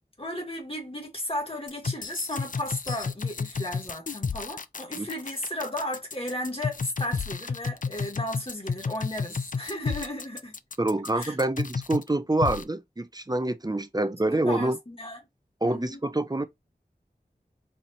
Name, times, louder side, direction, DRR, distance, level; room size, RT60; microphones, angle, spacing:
voice 1, 0.2-10.5 11.1-11.3 14.4-15.2 15.6-16.0, left 1 dB, 35° left, 1.9 m, -34 dB
sound 1, 1.7-12.1 12.4-12.6, left 5 dB, 50° left, 0.4 m, -32 dB
voice 2, 10.8-14.8 15.6-16.4, right 2 dB, 25° right, 0.5 m, -26 dB
4.2 x 2.8 x 2.9 m
wide cardioid pair, 45°, 17 cm